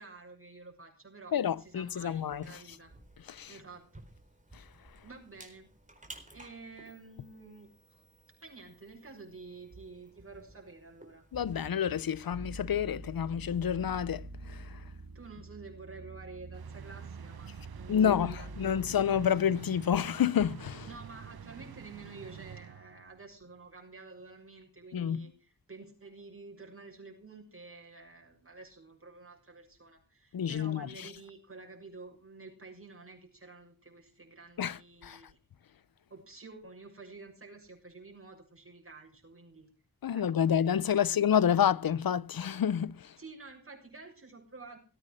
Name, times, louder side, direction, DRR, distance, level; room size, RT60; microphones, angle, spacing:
voice 1, 0.0-2.9 3.5-3.9 5.0-5.7 6.3-7.7 8.4-11.3 15.1-19.4 20.8-35.4 36.1-39.7 40.1-40.5 41.0-41.2 43.2-44.8, right 3 dB, 40° right, 6.8 m, -50 dB
voice 2, 1.3-2.6 3.3-3.5 4.5-4.6 11.3-14.8 17.9-20.9 24.9-25.3 30.3-31.1 34.6-35.2 40.0-43.1, left 8 dB, 75° left, 0.6 m, -29 dB
sound 1, 1.5-12.3, right 2 dB, 20° right, 4.3 m, -55 dB
sound 2, 12.3-21.9, right 2 dB, 65° right, 3.3 m, -47 dB
sound 3, 16.5-23.2, right 8 dB, 90° right, 0.8 m, -48 dB
18.5 x 9.0 x 6.3 m
wide cardioid pair, 70°, 36 cm